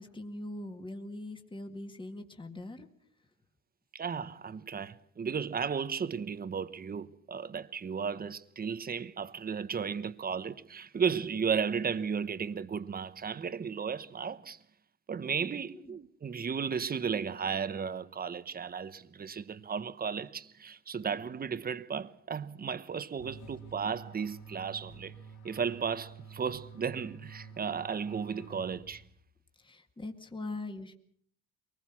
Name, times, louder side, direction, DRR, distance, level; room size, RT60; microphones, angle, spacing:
voice 1, 0.0-2.9 15.7-16.0 29.6-30.9, left 2 dB, 15° left, 2.0 m, -42 dB
voice 2, 3.9-14.6 15.1-25.1 25.4-29.0, right 6 dB, 30° right, 1.1 m, -34 dB
sound 1, 23.2-29.3, right 5 dB, 85° left, 2.1 m, -49 dB
23.5 x 20.0 x 6.1 m
cardioid pair, 105°, 30 cm